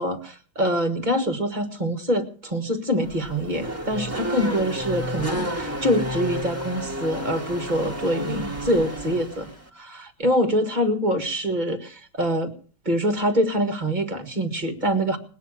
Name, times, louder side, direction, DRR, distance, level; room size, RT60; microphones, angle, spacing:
voice 1, 0.0-12.5 12.9-15.2, equal, 25° right, 8 dB, 1.7 m, -25 dB
Race car auto racing / Accelerating revving vroom, 3.0-9.7, equal, 5° right, 1.7 m, -31 dB
20.0 x 7.1 x 9.0 m, 0.43 s
omnidirectional pair, 2.3 m